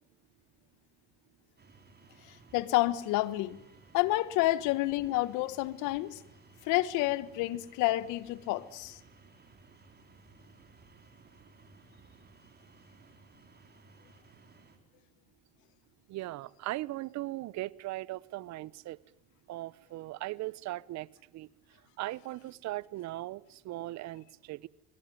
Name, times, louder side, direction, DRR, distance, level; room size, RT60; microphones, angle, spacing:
sound 1, 1.6-14.8, right 3 dB, 30° right, 4.9 m, -58 dB
voice 1, 2.5-3.6 3.9-6.2 6.6-9.0, left 17 dB, 75° left, 1.4 m, -29 dB
voice 2, 16.1-19.0 19.5-21.1 21.3-21.5 22.0-24.7, right 17 dB, 60° right, 0.9 m, -38 dB
23.5 x 23.0 x 9.3 m
supercardioid pair, 75°, 31 cm